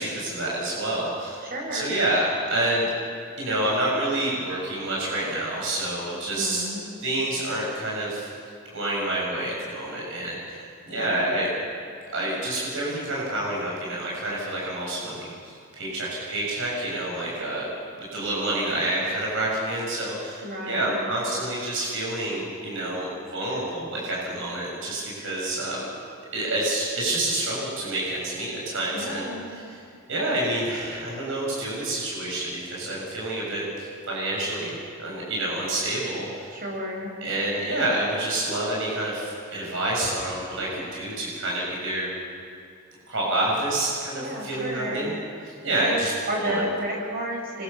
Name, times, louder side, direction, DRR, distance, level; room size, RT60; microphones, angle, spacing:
voice 1, 0.0-1.4 1.7-2.9 3.4-6.6 7.0-8.3 8.7-11.5 12.1-17.7 17.9-25.9 26.3-29.3 29.5-29.8 30.1-36.6 37.2-42.1 43.1-45.1 45.6-46.1 46.4-46.6, right 1 dB, 65° right, -4 dB, 7.2 m, -28 dB
voice 2, 1.4-1.9 6.3-6.8 11.0-11.4 20.4-21.0 28.9-29.5 36.5-37.1 40.5-40.8 44.2-45.0 45.8-47.6, right 1 dB, 45° right, 0 dB, 6.4 m, -32 dB
26.5 x 24.5 x 7.1 m, 2.4 s
head